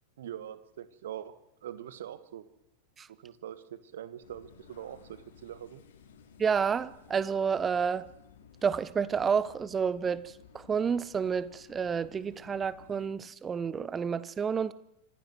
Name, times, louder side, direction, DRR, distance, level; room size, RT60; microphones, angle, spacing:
voice 1, 0.2-1.3 1.6-2.5 3.1-5.8, right 10 dB, 60° right, 1.6 m, -43 dB
sound 1, 4.2-13.1, left 7 dB, 60° left, 3.2 m, -56 dB
voice 2, 6.4-8.1 8.6-14.7, right 6 dB, 20° right, 1.0 m, -30 dB
26.0 x 16.0 x 8.0 m
figure-of-eight pair, 90°, 0 cm